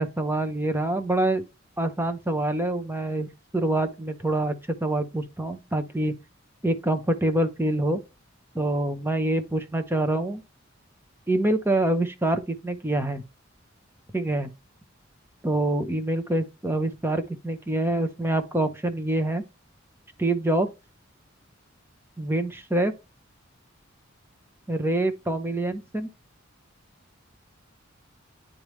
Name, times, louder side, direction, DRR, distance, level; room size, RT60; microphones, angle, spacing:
voice 1, 0.0-1.4 1.8-4.5 4.8-6.1 6.6-8.0 8.5-10.4 11.3-13.2 14.1-14.5 15.4-19.5 20.2-20.7 22.2-22.9 24.7-26.1, right 1 dB, 10° right, 0.8 m, -26 dB
10.0 x 3.4 x 3.1 m
head